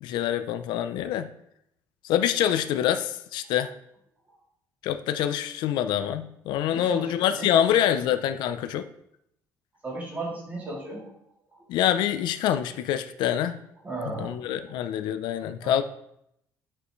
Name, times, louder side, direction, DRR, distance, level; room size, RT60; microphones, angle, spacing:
voice 1, 0.0-1.3 2.0-3.8 4.8-8.9 11.7-13.6 14.2-15.8, left 10 dB, 80° left, 10 dB, 0.5 m, -25 dB
voice 2, 6.6-7.7 9.8-11.1 11.5-11.6 13.8-14.4 14.6-14.7 15.6-15.8, right 2 dB, 20° right, -4 dB, 3.0 m, -36 dB
10.5 x 5.6 x 3.2 m, 0.76 s
cardioid pair, 155°, 8 cm